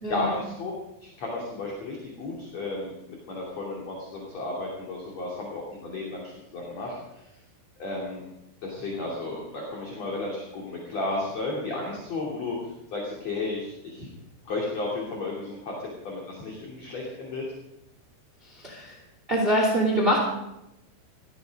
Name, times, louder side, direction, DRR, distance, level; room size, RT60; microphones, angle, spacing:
voice 1, 0.1-0.7 1.0-7.2 7.8-8.2 8.6-14.1 14.4-17.4, left 2 dB, 40° left, -3 dB, 3.3 m, -33 dB
voice 2, 18.4-19.0 19.3-20.2, equal, 20° right, -1 dB, 1.4 m, -24 dB
18.0 x 14.0 x 5.3 m, 0.89 s
omnidirectional pair, 5.8 m